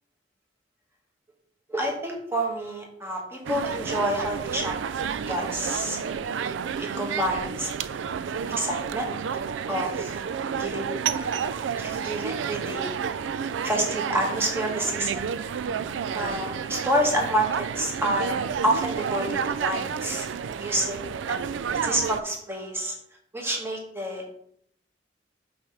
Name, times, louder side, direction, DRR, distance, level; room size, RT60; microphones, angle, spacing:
voice 1, 1.7-5.0 5.3-6.0 6.8-8.0 8.6-9.1 9.7-10.2 10.5-11.4 11.8-12.9 13.6-15.2 16.1-20.3 20.6-21.0 21.3-21.4 21.8-22.9 23.3-24.3, right 1 dB, 15° right, 0 dB, 1.3 m, -28 dB
sound 1, 3.5-22.2, right 7 dB, 90° right, 0.3 m, -30 dB
5.7 x 3.4 x 5.6 m, 0.68 s
head